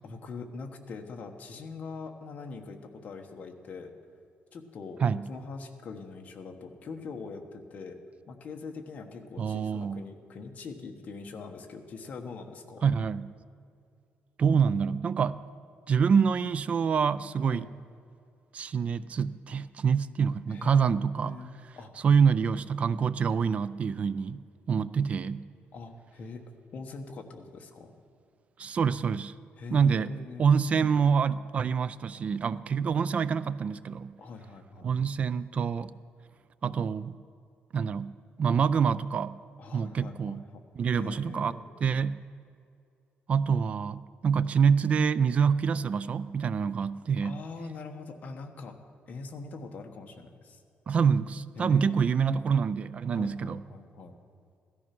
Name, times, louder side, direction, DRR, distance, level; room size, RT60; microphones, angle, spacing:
voice 1, 0.0-3.9 4.5-5.0 5.3-8.0 8.3-12.8 17.4-17.6 20.5-21.9 25.7-26.4 26.7-27.9 29.6-30.4 34.2-34.9 39.6-40.7 40.9-41.7 47.2-48.8 49.1-50.6 51.6-52.4 53.1-54.1, left 4 dB, 40° left, 3 dB, 1.4 m, -42 dB
voice 2, 9.4-10.0 12.8-13.3 14.4-15.4 15.9-17.7 18.5-21.4 22.0-24.4 24.7-25.5 28.6-29.3 29.7-30.1 30.4-34.1 34.8-35.9 36.6-37.2 37.7-39.4 39.7-40.4 40.8-41.5 41.8-42.2 43.3-47.4 50.9-53.6, right 6 dB, 35° right, 16 dB, 0.4 m, -26 dB
16.0 x 13.5 x 6.0 m, 2.4 s
cardioid pair, 175°, 4 cm